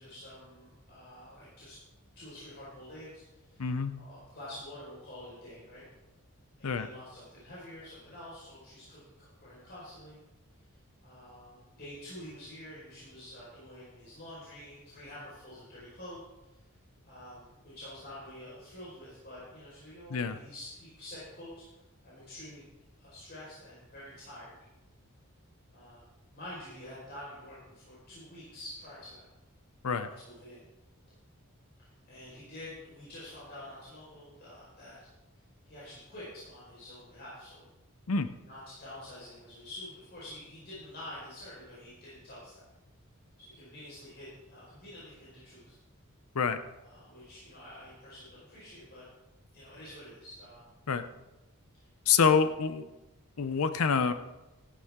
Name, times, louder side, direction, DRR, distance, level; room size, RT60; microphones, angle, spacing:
voice 1, 0.0-1.8 2.1-3.7 4.0-5.8 6.6-10.2 11.0-16.2 16.5-16.6 17.0-21.6 22.0-22.6 23.0-24.6 25.7-26.0 26.3-29.2 30.0-30.6 32.0-35.0 35.6-37.6 38.5-42.7 43.4-45.8 46.7-49.1 49.5-50.7 51.8-51.9, left 1 dB, 45° left, -9 dB, 4.7 m, -48 dB
voice 2, 3.6-4.0 6.6-6.9 20.1-20.4 29.8-30.1 38.1-38.3 46.3-46.6 50.9-51.0 52.1-52.8 53.4-54.1, left 5 dB, 80° left, 11 dB, 0.7 m, -26 dB
15.0 x 11.0 x 3.7 m, 1.0 s
head